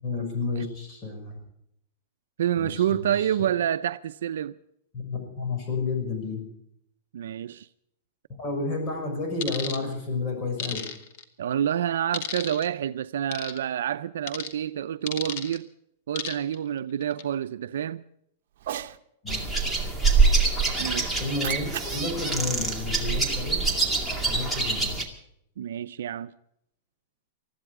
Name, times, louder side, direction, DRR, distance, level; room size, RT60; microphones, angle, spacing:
voice 1, 0.0-1.4 2.6-3.3 4.9-6.4 8.4-10.8 19.2-19.5 20.8-23.6 24.2-25.0, left 3 dB, 30° left, 6.0 m, -31 dB
voice 2, 2.4-4.6 7.1-7.7 11.4-15.7 16.1-18.0 20.8-21.1 25.6-26.3, right 10 dB, 85° right, 0.6 m, -28 dB
sound 1, 9.4-9.8 10.6-11.2 12.1-12.7 13.3-13.6 14.3-14.5 15.1-15.6 16.2-16.6 17.0-17.2, left 8 dB, 55° left, 1.7 m, -33 dB
Cat, 18.5-19.0 21.2-23.5, right 11 dB, 70° right, 0.9 m, -38 dB
sound 2, 19.3-25.0, right 4 dB, 5° left, 2.2 m, -25 dB
20.5 x 14.0 x 4.8 m
supercardioid pair, 155°, 0 cm